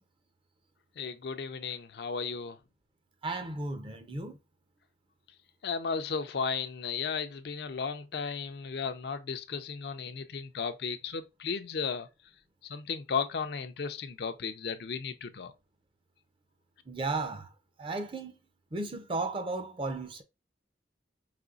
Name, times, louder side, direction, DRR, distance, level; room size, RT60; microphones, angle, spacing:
voice 1, 1.0-2.6 5.6-12.1 12.6-15.5, left 5 dB, 65° left, 0.5 m, -35 dB
voice 2, 3.2-4.4 16.9-17.5 17.8-18.4 18.7-20.2, right 3 dB, 30° right, 0.6 m, -34 dB
5.0 x 3.1 x 2.4 m
head